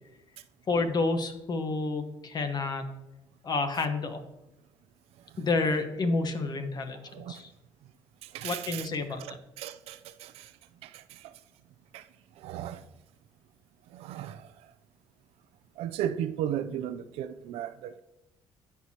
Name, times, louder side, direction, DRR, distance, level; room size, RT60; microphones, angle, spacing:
voice 1, 0.7-2.8 3.4-4.2 5.4-7.0 7.3-7.5 8.4-9.2, left 3 dB, 40° left, 1.1 m, -29 dB
voice 2, 7.0-7.4 8.2-8.9 9.2-10.5 10.8-11.4 11.9-12.1 12.4-12.8 13.9-14.7 15.8-18.0, right 10 dB, 75° right, 0.4 m, -36 dB
13.0 x 4.6 x 2.9 m
supercardioid pair, 80°, 10 cm